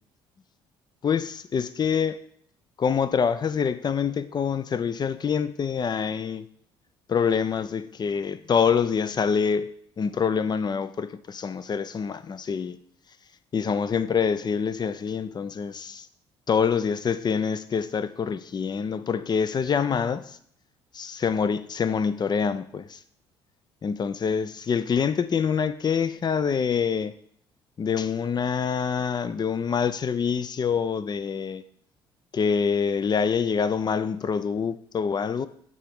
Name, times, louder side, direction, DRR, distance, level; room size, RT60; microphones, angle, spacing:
voice 1, 1.0-2.2 2.8-6.5 7.1-12.8 13.5-16.1 16.5-20.3 20.9-23.0 23.8-27.1 27.8-31.6 32.3-35.5, left 6 dB, 35° left, 0.5 m, -26 dB
8.4 x 3.8 x 3.6 m
hypercardioid pair, 55°, 12 cm